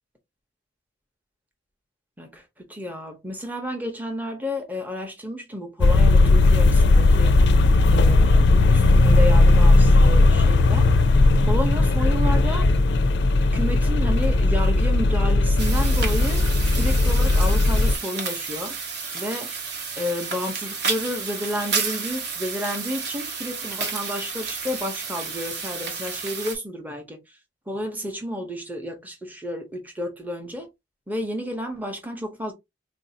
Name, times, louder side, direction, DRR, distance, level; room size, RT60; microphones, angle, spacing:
voice 1, 2.7-7.3 7.9-10.9 11.5-12.7 13.4-16.4 16.7-18.8 19.1-19.5 20.0-27.4 27.7-30.7 31.1-32.5, left 1 dB, 10° right, 0.7 m, -31 dB
sound 1, 5.8-17.9, left 2 dB, 55° left, 0.4 m, -17 dB
sound 2, 15.6-26.6, right 5 dB, 55° right, 0.9 m, -31 dB
3.9 x 2.6 x 2.7 m
head